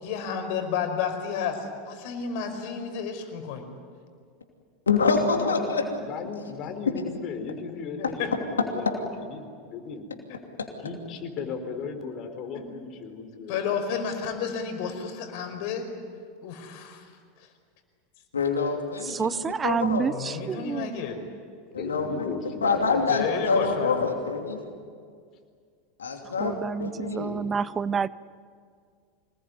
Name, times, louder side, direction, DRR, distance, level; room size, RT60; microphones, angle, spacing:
voice 1, 0.0-3.7 8.0-8.3 13.5-15.9 16.4-17.0 20.1-21.2 23.1-23.9, left 6 dB, 60° left, 6 dB, 5.1 m, -31 dB
voice 2, 4.9-5.8 8.0-8.1 10.6-10.7 18.3-20.1 21.7-22.3 22.6-24.6 26.0-26.5 26.8-27.5, left 4 dB, 90° left, 3 dB, 2.8 m, -26 dB
voice 3, 5.4-5.7 6.0-10.1 10.7-13.6 21.8-23.8, left 5 dB, 45° left, 6 dB, 4.4 m, -36 dB
voice 4, 19.0-21.0 26.4-28.1, right 6 dB, 25° right, 18 dB, 0.6 m, -28 dB
26.0 x 20.0 x 9.7 m, 2.1 s
hypercardioid pair, 90°, 0 cm